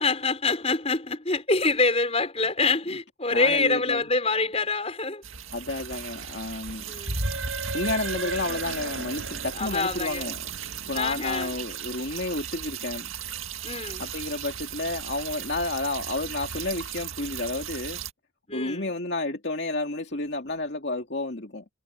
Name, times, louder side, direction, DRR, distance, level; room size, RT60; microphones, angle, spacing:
voice 1, 0.0-5.2 6.9-7.2 9.6-10.3 10.9-11.5 13.6-14.0 18.5-18.9, left 3 dB, 30° left, 5.5 m, -26 dB
voice 2, 3.3-4.0 5.5-7.0 7.7-10.5 10.9-13.1 14.0-18.0 18.5-21.6, left 2 dB, 55° left, 2.5 m, -31 dB
sound 1, 5.2-18.1, right 9 dB, 90° right, 2.1 m, -37 dB
sound 2, 7.0-10.6, right 2 dB, 70° right, 7.7 m, -33 dB
head